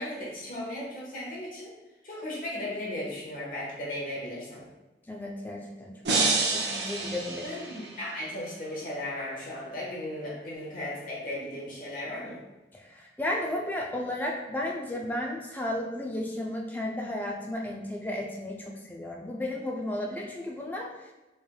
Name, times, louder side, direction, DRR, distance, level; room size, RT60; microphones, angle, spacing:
voice 1, 0.0-1.7 2.0-4.6 7.4-12.4, left 1 dB, 50° left, -5 dB, 1.2 m, -36 dB
voice 2, 5.1-6.3 6.5-7.5 12.7-20.9, left 1 dB, 10° left, -1 dB, 0.5 m, -34 dB
sound 1, 6.0-8.2, right 3 dB, 75° right, 0.6 m, -28 dB
4.4 x 3.2 x 2.3 m, 1.1 s
head